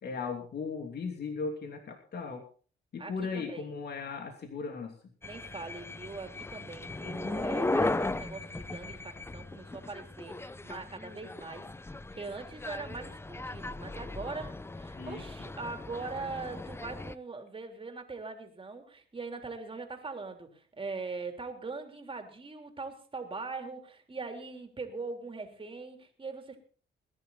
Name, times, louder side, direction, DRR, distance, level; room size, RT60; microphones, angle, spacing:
voice 1, 0.0-2.4 2.9-5.0 14.9-15.2, left 4 dB, 55° left, 4 dB, 2.9 m, -37 dB
voice 2, 3.0-3.6 5.2-11.7 12.1-26.6, right 4 dB, 25° right, 4 dB, 3.5 m, -41 dB
sound 1, 5.2-17.1, left 2 dB, 10° left, 0.7 m, -37 dB
20.0 x 11.0 x 4.2 m, 0.41 s
cardioid pair, 90°, 20 cm